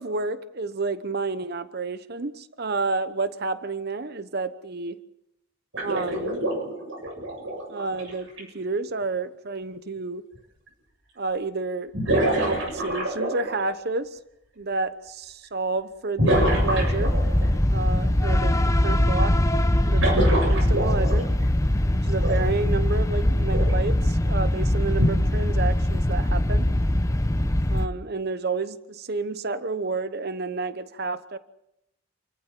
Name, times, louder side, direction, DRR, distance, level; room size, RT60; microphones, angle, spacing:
voice 1, 0.0-5.0 5.8-6.4 7.7-10.2 11.2-11.9 12.4-14.2 14.6-17.1 17.7-19.3 19.8-21.3 21.9-26.7 27.7-31.4, right 3 dB, 50° right, 12 dB, 1.0 m, -30 dB
sound 1, 5.7-8.4 10.3-10.4 11.9-13.7 16.2-17.5 19.9-21.4 22.2-22.3 23.5-23.7 25.0-25.1, right 1 dB, 70° right, 7.7 m, -26 dB
sound 2, 16.3-27.9, left 1 dB, 15° left, 0.8 m, -22 dB
28.5 x 15.0 x 7.5 m, 0.84 s
head